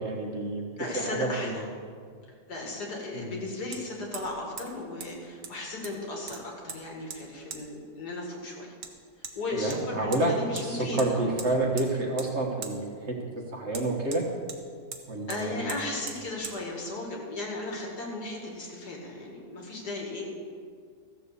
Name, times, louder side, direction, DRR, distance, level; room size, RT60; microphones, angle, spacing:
voice 1, 0.0-0.6 0.9-1.6 3.1-3.3 9.5-10.4 10.7-12.8 13.1-13.2 13.5-14.2 15.1-15.7, right 2 dB, 45° right, 0 dB, 1.5 m, -28 dB
voice 2, 0.8-1.7 2.5-8.7 9.4-11.3 15.3-20.3, left 2 dB, 70° left, -1 dB, 2.7 m, -36 dB
Hammer, 3.7-3.8 4.1-4.3 4.6-4.7 5.0-5.1 5.4-6.0 6.3-6.8 7.1-7.2 7.5-7.6 8.8-8.9 9.2-9.4 9.7-10.2 10.6-10.7 11.0-11.1 11.4-11.9 12.2-12.3 12.6-12.7 13.7-14.6 14.9-15.0 15.3-15.4 15.7-15.8 16.1-16.2 16.4-16.6, right 6 dB, 85° right, 1.7 m, -40 dB
14.5 x 7.5 x 6.7 m, 2.1 s
omnidirectional pair, 1.8 m